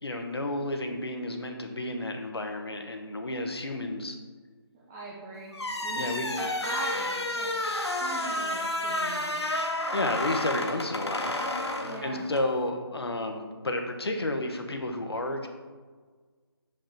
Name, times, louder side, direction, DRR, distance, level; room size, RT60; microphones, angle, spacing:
voice 1, 0.0-4.2 6.0-6.3 9.9-11.3 11.7-15.5, left 1 dB, 70° left, 4 dB, 1.2 m, -31 dB
voice 2, 4.7-5.6 5.8-7.5 8.0-9.4 11.8-12.3, right 2 dB, 15° right, -5 dB, 0.7 m, -40 dB
sound 1, 5.5-12.5, left 1 dB, 90° left, 0.9 m, -31 dB
7.3 x 5.3 x 4.5 m, 1.5 s
figure-of-eight pair, 155°, 14 cm